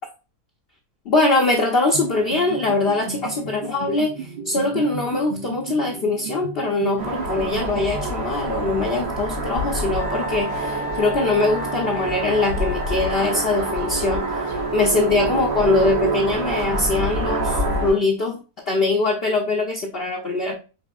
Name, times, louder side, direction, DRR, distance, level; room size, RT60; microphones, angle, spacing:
voice 1, 1.1-14.3 14.7-18.4 18.7-20.5, left 3 dB, 55° left, 0.7 m, -22 dB
sound 1, 1.9-8.6, right 4 dB, 85° right, 0.4 m, -35 dB
sound 2, 7.0-17.9, right 2 dB, 60° right, 1.7 m, -26 dB
Wind instrument woodwind instrument, 10.0-15.0, left 1 dB, 75° left, 1.1 m, -34 dB
5.3 x 3.3 x 2.3 m
omnidirectional pair, 1.7 m